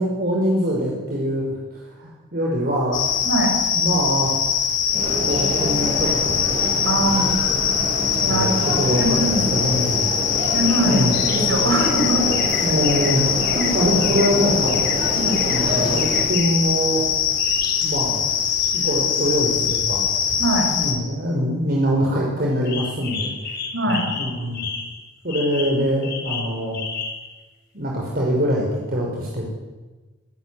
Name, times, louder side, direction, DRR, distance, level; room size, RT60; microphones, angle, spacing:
voice 1, 0.0-3.1 3.7-4.3 5.1-6.4 6.9-7.2 8.3-10.1 10.9-11.2 12.6-13.3 13.7-14.8 15.4-17.0 17.8-18.2 18.7-20.1 20.7-23.3 23.9-24.7 25.2-26.8 27.7-29.5, equal, 50° right, -2 dB, 5.8 m, -23 dB
sound 1, 2.9-20.9, left 8 dB, 75° left, 4.5 m, -22 dB
sound 2, 4.9-16.2, right 1 dB, 30° right, 6.7 m, -27 dB
voice 2, 6.8-7.4 8.2-8.5 8.9-9.5 10.5-12.3 13.5-13.7 15.2-15.5 20.4-20.7 23.7-24.1, right 1 dB, 80° right, 3 dB, 7.3 m, -22 dB
sound 3, 10.4-11.5 11.8-14.3 14.7-15.0 15.3-15.6 16.0-16.5 17.4-18.0 18.4-19.8 22.6-25.0 25.3-27.3, left 5 dB, 60° left, 7.0 m, -33 dB
25.0 x 18.0 x 10.0 m, 1.2 s
head